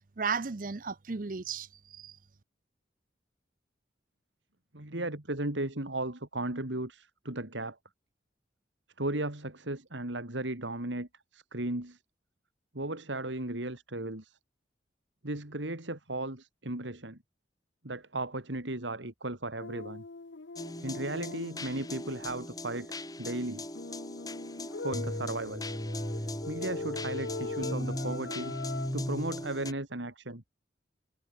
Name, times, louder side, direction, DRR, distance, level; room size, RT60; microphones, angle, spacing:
voice 1, 0.2-2.2, right 5 dB, 45° right, 0.7 m, -34 dB
voice 2, 4.7-7.8 9.0-12.0 12.7-14.4 15.2-17.2 17.8-20.0 20.8-22.9 23.2-23.6 24.8-25.7 26.4-28.5 28.9-30.4, right 2 dB, 80° right, 3.1 m, -35 dB
sound 1, 19.6-21.9 23.7-28.9, left 3 dB, 80° left, 0.9 m, -41 dB
sound 2, 20.6-29.7, left 1 dB, 20° left, 5.1 m, -38 dB
head